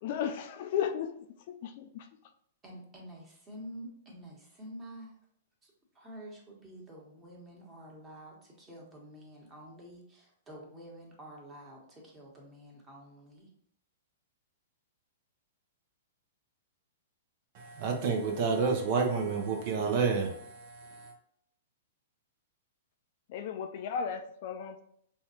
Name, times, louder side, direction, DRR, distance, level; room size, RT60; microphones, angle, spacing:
voice 1, 0.0-1.1 1.6-2.0 23.3-24.8, left 8 dB, 50° left, 0.4 m, -34 dB
voice 2, 2.6-5.1 6.0-13.5, equal, 20° right, 1.3 m, -48 dB
voice 3, 17.5-21.1, right 5 dB, 45° right, 0.7 m, -30 dB
5.4 x 2.4 x 2.9 m
figure-of-eight pair, 110°, 0 cm